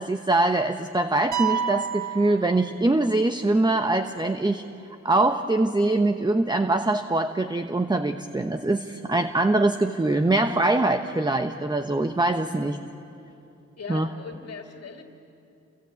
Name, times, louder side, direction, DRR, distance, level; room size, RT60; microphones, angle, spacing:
voice 1, 0.0-4.6 5.0-12.8 13.9-14.1, right 2 dB, 15° right, 7 dB, 1.0 m, -23 dB
sound 1, 1.3-3.2, right 8 dB, 80° right, 1.1 m, -30 dB
voice 2, 13.8-15.0, left 5 dB, 55° left, 3 dB, 2.6 m, -39 dB
29.0 x 24.5 x 8.3 m, 2.7 s
cardioid pair, 75°, 29 cm